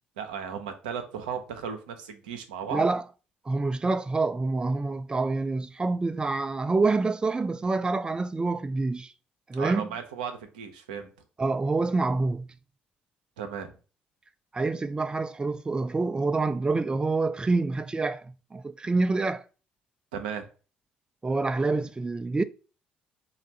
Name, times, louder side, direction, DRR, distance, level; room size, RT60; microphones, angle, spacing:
voice 1, 0.2-2.9 9.6-11.1 13.4-13.7 20.1-20.5, right 7 dB, 80° right, 0.6 m, -35 dB
voice 2, 2.7-3.0 3.5-9.1 9.5-9.9 11.4-12.5 14.5-19.4 21.2-22.4, right 3 dB, 20° right, 0.3 m, -27 dB
3.2 x 2.3 x 4.2 m
figure-of-eight pair, 50°, 4 cm